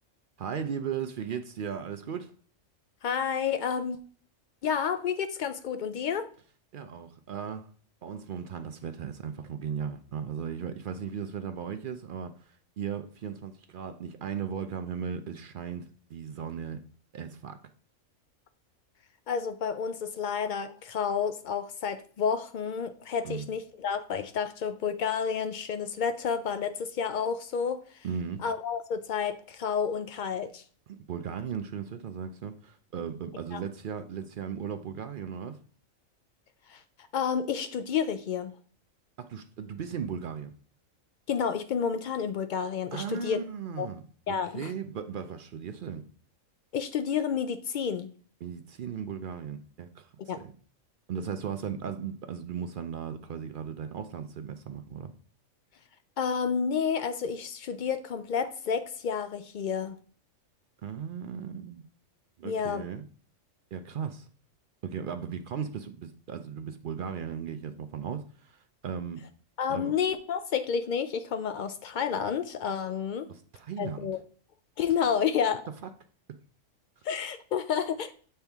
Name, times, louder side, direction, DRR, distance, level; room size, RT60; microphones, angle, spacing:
voice 1, 0.4-2.3 6.7-7.7 8.0-16.8 17.1-17.6 23.2-23.5 28.0-28.4 30.9-35.6 39.2-40.5 42.9-46.0 48.4-50.1 50.4-50.5 51.1-55.1 60.8-61.9 62.4-63.0 63.7-64.3 64.8-69.2 69.7-69.9 73.3-74.1 76.3-76.4, right 7 dB, 65° right, 0.5 m, -37 dB
voice 2, 3.0-4.0 4.6-6.3 19.3-28.1 28.4-30.6 33.5-33.6 36.7-36.8 37.1-38.5 41.3-43.4 43.8-43.9 44.3-44.7 46.7-48.1 50.3-50.4 56.2-60.0 62.4-62.9 69.6-73.3 73.8-74.2 74.8-75.6 77.0-78.1, left 7 dB, 80° left, 0.4 m, -30 dB
7.1 x 4.3 x 3.5 m
omnidirectional pair, 1.4 m